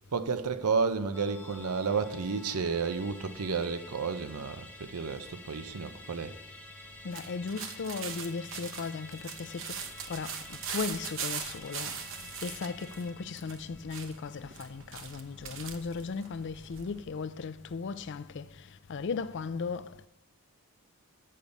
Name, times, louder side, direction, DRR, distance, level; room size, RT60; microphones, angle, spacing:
voice 1, 0.1-6.3, right 5 dB, 90° right, 0.6 m, -31 dB
Musical instrument, 1.1-15.8 16.1-16.2, left 2 dB, 10° left, 0.9 m, -50 dB
voice 2, 7.0-9.7 10.1-12.0 12.4-18.5 18.9-20.1, left 5 dB, 55° left, 0.4 m, -37 dB
sound 1, 7.1-17.0, right 7 dB, 60° right, 0.9 m, -41 dB
8.5 x 7.0 x 5.2 m
head